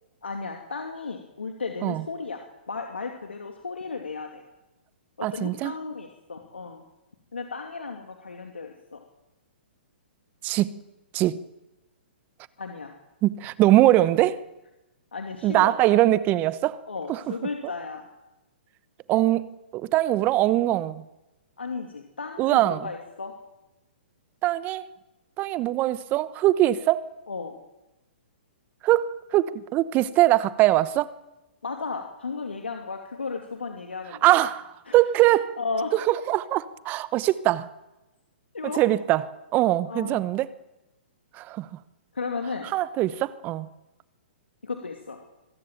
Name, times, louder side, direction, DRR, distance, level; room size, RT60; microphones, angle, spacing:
voice 1, 0.2-2.4 2.7-4.4 5.2-6.8 7.3-9.0 12.6-12.9 15.1-15.8 16.8-18.1 21.6-23.3 27.3-27.5 31.6-34.3 34.9-35.0 35.6-35.9 38.5-38.8 39.9-40.3 42.1-42.7 44.6-45.2, left 4 dB, 90° left, 2.7 m, -34 dB
voice 2, 5.2-5.7 10.4-10.7 11.1-11.4 13.2-14.4 15.4-16.8 17.1-17.2 19.1-21.0 22.4-22.9 24.4-24.8 25.4-27.0 28.8-31.1 34.2-35.6 35.9-37.7 38.8-39.2 39.5-40.5 41.4-41.7 42.7-43.7, right 15 dB, 30° right, 1.0 m, -22 dB
24.5 x 15.0 x 9.1 m
hypercardioid pair, 130°, 6 cm